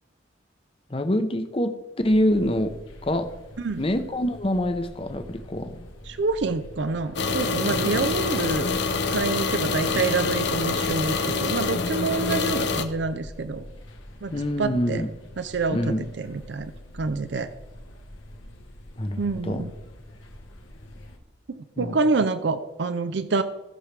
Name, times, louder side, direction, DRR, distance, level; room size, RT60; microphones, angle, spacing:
voice 1, 0.9-1.7 2.0-2.7 3.0-3.3 3.8-5.9 7.7-8.0 14.3-15.1 15.7-16.1 19.0-19.7 21.8-22.0, left 1 dB, 30° left, 8 dB, 0.8 m, -25 dB
sound 1, 2.0-21.2, left 1 dB, 85° left, 1.6 m, -45 dB
voice 2, 6.1-8.6 9.1-13.6 14.2-14.3 14.6-15.0 15.4-17.5 19.2-19.7 21.5-23.4, right 3 dB, 65° right, 11 dB, 0.5 m, -27 dB
sound 2, 7.2-12.8, left 4 dB, 65° left, 0.8 m, -26 dB
17.0 x 6.4 x 3.3 m, 1.0 s
head